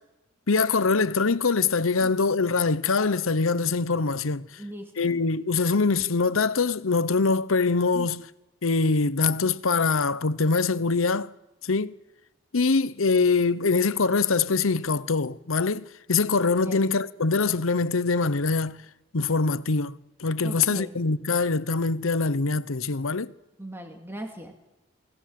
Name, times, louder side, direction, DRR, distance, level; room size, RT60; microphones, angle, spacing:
voice 1, 0.5-4.5 5.0-8.2 8.6-11.3 11.6-11.9 12.5-18.8 19.1-19.9 20.2-23.3, left 4 dB, 85° left, 0.9 m, -23 dB
voice 2, 4.6-5.1 7.9-8.1 16.6-16.8 20.4-20.9 23.6-24.5, right 1 dB, 10° right, 2.3 m, -38 dB
27.5 x 20.0 x 7.7 m
head